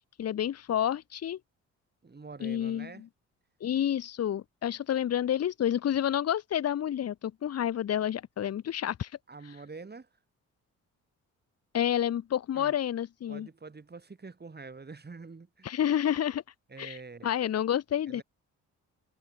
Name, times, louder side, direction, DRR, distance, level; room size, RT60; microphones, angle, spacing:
voice 1, 0.2-1.4 2.4-3.1 3.6-9.1 11.7-13.5 15.6-16.4 16.8-17.0 17.2-18.2, left 10 dB, 50° left, 1.0 m, -29 dB
voice 2, 2.0-3.1 9.3-10.1 12.5-12.7 13.3-15.8 16.7-17.3 18.1-18.2, right 4 dB, 30° right, 7.0 m, -46 dB
supercardioid pair, 65°, 33 cm